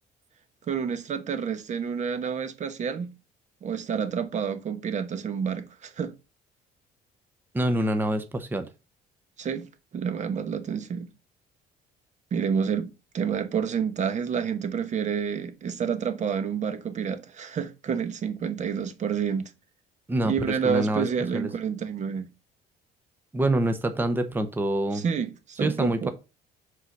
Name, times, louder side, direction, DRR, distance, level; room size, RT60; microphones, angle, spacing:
voice 1, 0.7-3.1 3.6-6.1 9.4-11.1 12.3-12.9 13.1-19.5 20.2-22.3 24.9-26.1, right 7 dB, 45° right, 1.1 m, -29 dB
voice 2, 7.5-8.7 20.1-21.1 21.3-21.5 23.3-25.0 25.6-26.1, right 1 dB, 10° right, 0.8 m, -26 dB
5.6 x 3.8 x 5.9 m
cardioid pair, 110°, 17 cm